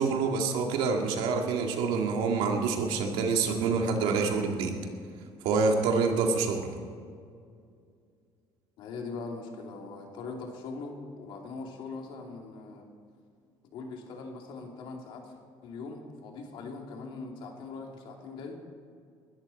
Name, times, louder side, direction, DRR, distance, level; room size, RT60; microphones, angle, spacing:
voice 1, 0.0-4.8 5.4-6.7, right 4 dB, 90° right, 3 dB, 2.1 m, -27 dB
voice 2, 8.8-12.9 13.6-15.4 15.6-18.6, left 4 dB, 70° left, 1 dB, 2.8 m, -41 dB
21.0 x 13.0 x 4.2 m, 2.3 s
cardioid pair, 125°, 9 cm